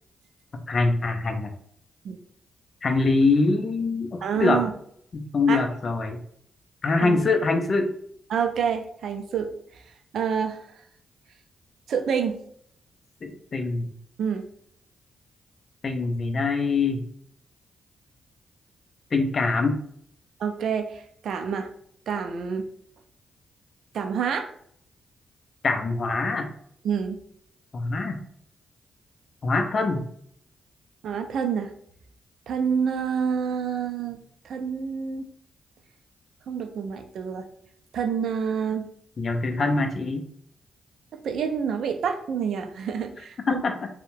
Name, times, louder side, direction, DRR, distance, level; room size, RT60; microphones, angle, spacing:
voice 1, 0.7-1.5 2.8-4.6 5.1-6.2 6.8-7.9 13.2-13.9 15.8-17.0 19.1-19.8 25.6-26.5 27.7-28.2 29.4-30.1 39.2-40.2 43.5-43.9, left 3 dB, 50° left, 5 dB, 0.4 m, -24 dB
voice 2, 4.2-4.7 5.5-5.7 7.0-7.2 8.3-9.8 10.1-10.6 11.9-12.4 14.2-14.5 20.4-21.7 22.1-22.7 23.9-24.5 26.8-27.2 31.0-31.7 32.5-34.2 34.4-35.3 36.5-37.5 37.9-38.9 41.1-43.6, right 7 dB, 75° right, 6 dB, 0.3 m, -28 dB
2.7 x 2.0 x 2.6 m, 0.66 s
supercardioid pair, 50°, 0 cm